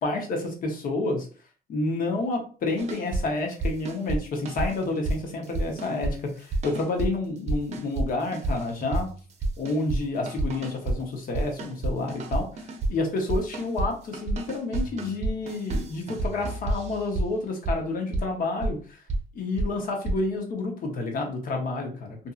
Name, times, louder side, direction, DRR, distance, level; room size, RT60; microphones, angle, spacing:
voice 1, 0.0-1.3 1.7-9.1 9.6-19.0 19.3-22.3, left 2 dB, 55° left, 2 dB, 0.9 m, -29 dB
sound 1, 2.8-3.2 3.5-4.2 4.4-5.2 5.4-6.1 6.5-7.1 7.5-8.1 8.3-10.0 10.3-11.0 11.2-12.9 13.3-13.9 14.1-17.2 17.6-17.7 18.1-18.2 18.6-18.7 19.1-19.2 19.6-19.7 20.0-20.1, right 2 dB, 40° right, 0.6 m, -29 dB
2.6 x 2.6 x 2.4 m, 0.39 s
cardioid pair, 110°, 17 cm